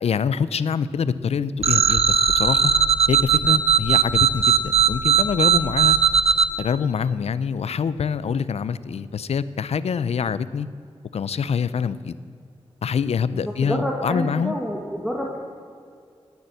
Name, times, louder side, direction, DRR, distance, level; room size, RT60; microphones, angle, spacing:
voice 1, 0.0-2.7 3.1-6.0 6.6-10.7 11.1-12.2 12.8-14.6, left 6 dB, 80° left, 16 dB, 0.5 m, -25 dB
sound 1, 1.6-6.5, right 7 dB, 75° right, 0.6 m, -18 dB
voice 2, 13.3-15.4, equal, 5° right, -2 dB, 1.5 m, -28 dB
17.5 x 7.1 x 7.9 m, 2.2 s
wide cardioid pair, 110°, 11 cm